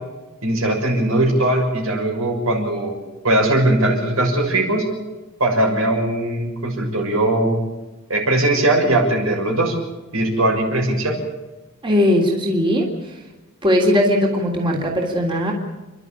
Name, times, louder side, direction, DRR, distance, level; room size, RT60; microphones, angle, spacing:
voice 1, 0.4-2.9 3.2-4.9 5.4-7.6 8.1-9.7 10.1-11.2, right 1 dB, 80° right, 1 dB, 6.5 m, -19 dB
voice 2, 11.8-12.9 13.6-15.5, left 1 dB, 25° right, -1 dB, 3.3 m, -18 dB
30.0 x 12.0 x 8.7 m, 1.1 s
head